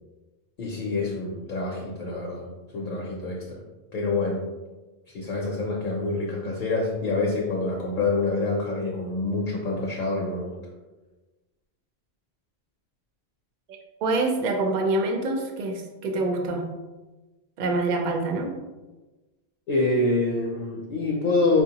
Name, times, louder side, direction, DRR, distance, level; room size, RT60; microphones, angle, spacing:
voice 1, 0.6-2.5 2.7-3.6 3.9-4.5 5.1-10.5 19.7-21.6, left 3 dB, 60° left, -1 dB, 0.6 m, -26 dB
voice 2, 13.7-16.7 17.6-18.5, right 2 dB, 55° right, 3 dB, 0.6 m, -26 dB
4.6 x 2.1 x 2.8 m, 1.2 s
omnidirectional pair, 1.1 m